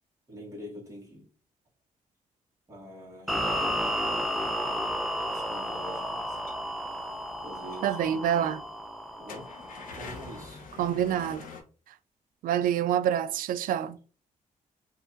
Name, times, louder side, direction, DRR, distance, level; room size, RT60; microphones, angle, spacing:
voice 1, 0.3-1.3 2.7-4.2 5.2-6.4 7.4-8.7 9.2-9.6 9.9-10.7, equal, 20° right, 2.0 m, -45 dB
sound 1, 3.3-10.5, equal, ahead, 0.6 m, -32 dB
sound 2, 6.5-6.7 7.3-7.4 7.7-7.8 8.2-8.3 9.1-11.6, left 4 dB, 85° left, 0.9 m, -44 dB
voice 2, 7.8-8.6 10.8-11.4 12.4-14.0, right 10 dB, 90° right, 0.4 m, -27 dB
4.8 x 2.9 x 2.6 m
cardioid pair, 120°, 14 cm